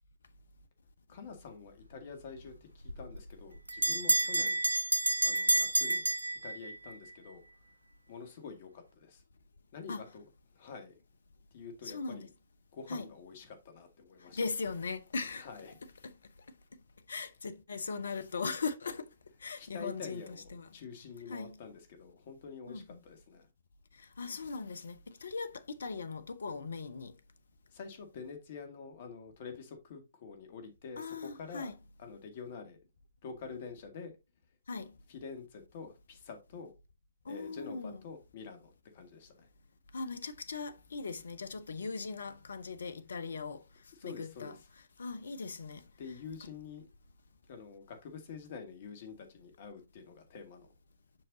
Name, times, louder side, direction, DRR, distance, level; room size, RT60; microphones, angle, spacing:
voice 1, 1.1-4.6 5.2-6.1 6.3-7.4 8.1-9.2 9.7-10.2 10.6-11.0 11.5-12.3 12.7-14.4 15.4-15.8 19.6-23.5 27.7-31.7 32.0-32.8 33.2-34.1 35.1-36.7 37.3-39.5 44.0-44.6 46.0-46.9 47.5-50.7, left 5 dB, 50° left, 2.1 m, -47 dB
Bell, 2.8-6.9, right 2 dB, 90° right, 0.5 m, -29 dB
voice 2, 11.8-12.3 12.9-13.1 14.4-15.5 16.0-16.1 17.1-19.1 19.4-20.7 21.3-21.6 22.7-23.0 24.2-27.1 31.0-31.8 34.7-34.9 37.3-38.0 39.9-43.6 44.0-44.6 45.0-45.8, left 4 dB, 70° left, 0.9 m, -39 dB
7.8 x 5.9 x 2.7 m
figure-of-eight pair, 125°, 0 cm